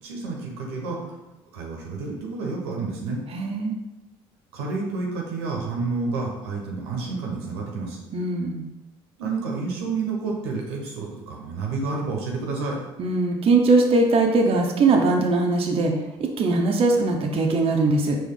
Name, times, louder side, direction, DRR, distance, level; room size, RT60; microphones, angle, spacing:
voice 1, 0.0-1.2 1.5-3.2 4.5-8.0 9.2-12.8, right 4 dB, 90° right, -1 dB, 0.9 m, -29 dB
voice 2, 3.3-3.8 8.1-8.6 13.0-15.9 16.2-18.2, right 3 dB, 45° right, 1 dB, 0.7 m, -20 dB
4.6 x 3.0 x 3.7 m, 0.99 s
hypercardioid pair, 60°, 13 cm